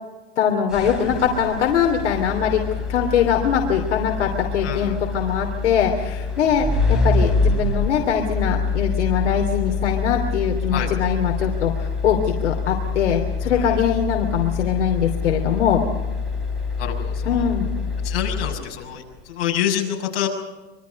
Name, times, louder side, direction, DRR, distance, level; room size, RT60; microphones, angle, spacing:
voice 1, 0.4-2.6 2.9-15.8 17.2-17.7, left 8 dB, 85° left, 3 dB, 3.0 m, -22 dB
sound 1, 0.7-19.0, left 4 dB, ahead, 4.4 m, -26 dB
voice 2, 4.6-5.0 10.7-10.9 13.5-13.8 16.8-17.5 18.0-20.3, left 10 dB, 60° left, 1 dB, 6.4 m, -27 dB
26.0 x 23.0 x 5.3 m, 1.2 s
supercardioid pair, 160°, 34 cm